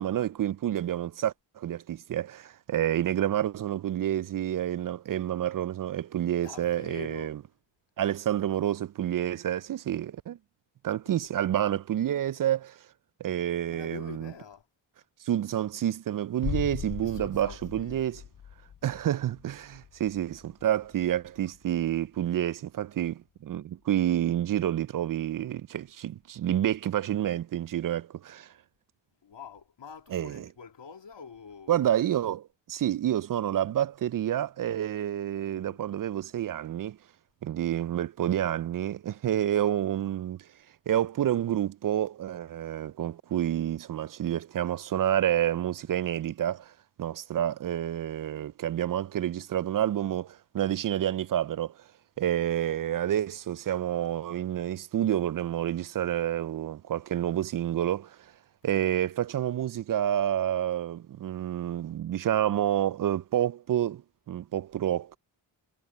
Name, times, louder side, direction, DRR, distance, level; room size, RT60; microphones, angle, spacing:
voice 1, 0.0-7.4 8.0-10.4 10.8-12.8 13.2-14.3 15.2-18.2 18.8-28.5 30.1-30.5 31.7-37.0 37.4-40.5 40.9-46.7 47.0-51.7 52.2-58.2 58.6-64.0 64.3-65.2, right 11 dB, 45° right, 0.4 m, -29 dB
voice 2, 6.4-7.4 11.0-11.3 13.6-14.7 17.0-18.1 29.2-31.9 35.4-35.8, left 6 dB, 60° left, 2.5 m, -46 dB
sound 1, 16.4-22.1 22.4-22.5, left 9 dB, 45° left, 0.7 m, -40 dB
cardioid pair, 50°, 48 cm